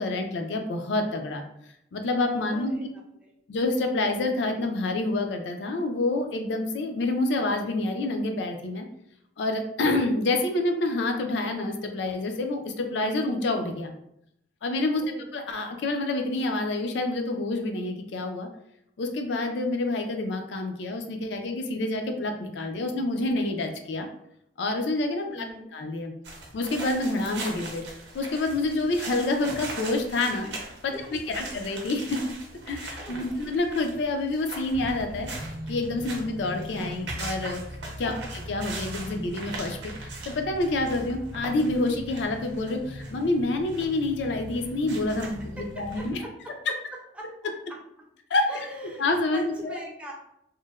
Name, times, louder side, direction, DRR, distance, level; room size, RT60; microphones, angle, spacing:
voice 1, 0.0-1.4 1.9-2.7 3.5-8.9 9.4-13.9 14.6-15.0 15.3-18.5 19.0-24.1 24.6-25.5 25.7-26.1 26.5-27.8 28.1-30.5 30.8-30.9 31.3-32.2 32.7-35.3 35.7-37.6 38.0-38.1 38.5-46.2 48.3-48.7 49.0-49.8, left 2 dB, 65° left, 5 dB, 0.4 m, -27 dB
voice 2, 2.3-2.9 3.2-3.3 15.0-15.3 25.3-25.7 30.4-30.5 30.9-31.0 33.1-33.4 38.0-38.3 45.6-46.5 47.1-47.5 48.5-50.1, right 1 dB, 5° right, -2 dB, 0.4 m, -41 dB
sound 1, 26.2-46.1, right 1 dB, 65° right, 0.6 m, -39 dB
3.0 x 2.0 x 2.3 m, 0.77 s
head